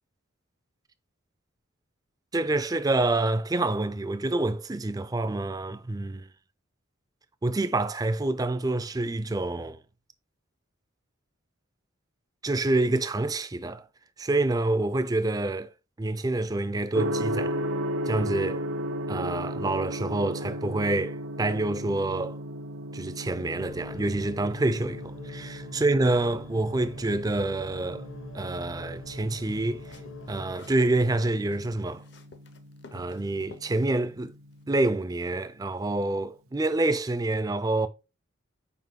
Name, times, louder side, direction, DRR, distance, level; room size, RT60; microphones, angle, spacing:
voice 1, 2.3-6.3 7.4-9.8 12.4-13.8 14.2-15.7 16.0-17.6 18.1-18.6 19.1-22.4 22.9-28.1 28.3-29.8 30.3-32.0 32.9-34.3 34.7-37.9, right 2 dB, 20° right, 0.4 m, -27 dB
Gong, 16.9-34.8, equal, 85° right, 0.7 m, -36 dB
sound 1, 23.5-30.5, left 2 dB, 80° left, 2.0 m, -43 dB
sound 2, 29.5-31.0 31.2-33.7, left 3 dB, 55° left, 0.8 m, -51 dB
5.8 x 4.8 x 3.6 m
head